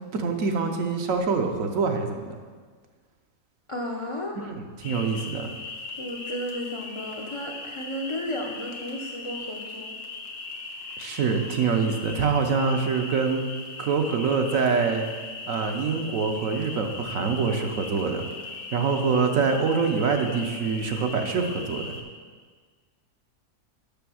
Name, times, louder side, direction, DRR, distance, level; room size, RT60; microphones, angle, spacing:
voice 1, 0.1-2.4 4.4-5.5 11.0-13.5 13.8-15.1 15.5-18.2 18.7-21.9, right 5 dB, 65° right, 5 dB, 1.0 m, -25 dB
voice 2, 3.7-4.4 6.0-9.9, left 1 dB, 40° left, 1 dB, 0.4 m, -33 dB
sound 1, 4.8-22.0, left 3 dB, 85° left, 1.6 m, -39 dB
6.9 x 6.2 x 6.2 m, 1.5 s
omnidirectional pair, 1.6 m